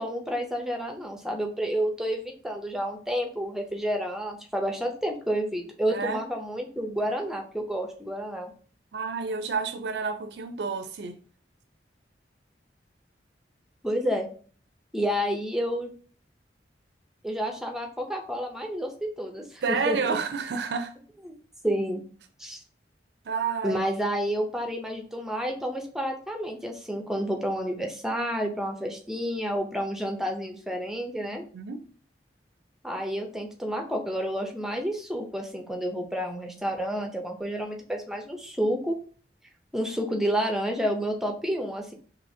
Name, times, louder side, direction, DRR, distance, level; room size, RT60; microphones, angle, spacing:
voice 1, 0.0-8.5 13.8-14.3 14.9-15.9 17.2-20.0 21.3-21.4 21.6-22.0 22.4-22.6 23.6-31.4 32.8-39.0 39.7-41.9, equal, 5° right, 0.5 m, -30 dB
voice 2, 5.9-6.2 8.9-11.2 19.6-20.9 23.2-23.8 31.3-31.8, right 5 dB, 70° right, 0.4 m, -30 dB
4.9 x 2.8 x 2.6 m
head